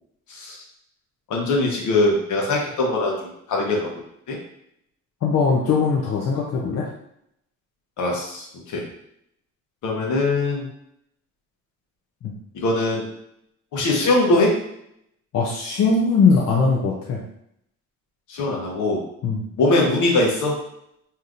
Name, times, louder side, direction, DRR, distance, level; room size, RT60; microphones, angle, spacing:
voice 1, 1.3-3.9 4.3-4.4 8.0-8.8 9.8-10.7 12.5-13.1 13.7-14.5 18.3-19.0 19.6-20.6, left 2 dB, 75° left, -1 dB, 1.0 m, -21 dB
voice 2, 5.2-6.9 12.2-12.4 15.3-17.2 19.2-19.5, left 4 dB, 60° left, -2 dB, 0.6 m, -20 dB
3.3 x 2.8 x 2.4 m, 0.75 s
cardioid pair, 90°, 30 cm